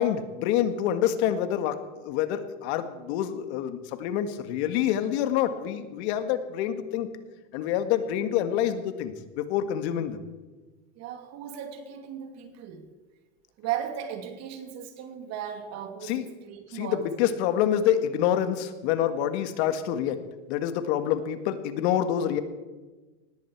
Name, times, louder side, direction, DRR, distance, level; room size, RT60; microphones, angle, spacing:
voice 1, 0.0-7.1 7.5-10.2 16.0-16.3 16.7-20.2 20.5-22.4, left 10 dB, 60° left, 10 dB, 1.8 m, -27 dB
voice 2, 11.0-12.9 13.6-17.1, right 9 dB, 45° right, 6 dB, 2.6 m, -36 dB
19.0 x 14.5 x 4.7 m, 1.3 s
supercardioid pair, 125°, 37 cm